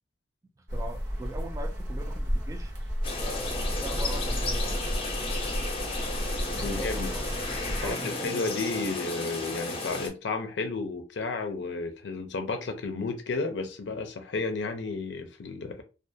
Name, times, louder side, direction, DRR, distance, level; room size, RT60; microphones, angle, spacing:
voice 1, 0.7-2.7 3.2-4.8 6.6-8.5, right 1 dB, 20° right, 0.3 m, -41 dB
sound 1, 0.7-7.9, equal, 80° right, 0.8 m, -32 dB
sound 2, 3.0-10.1, left 2 dB, 35° left, 0.6 m, -34 dB
voice 2, 6.5-7.1 7.7-15.8, left 3 dB, 85° left, 0.5 m, -32 dB
2.4 x 2.3 x 2.6 m
head